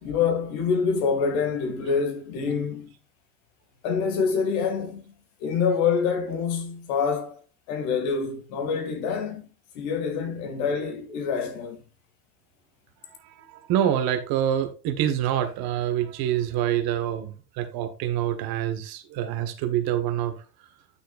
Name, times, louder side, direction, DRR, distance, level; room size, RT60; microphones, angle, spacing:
voice 1, 0.0-2.9 3.8-5.1 5.4-7.4 7.7-9.5 9.7-11.8, left 5 dB, 60° left, 2.4 m, -26 dB
voice 2, 13.2-20.3, right 10 dB, 50° right, 1.6 m, -26 dB
10.0 x 6.4 x 2.6 m
hypercardioid pair, 85°, 47 cm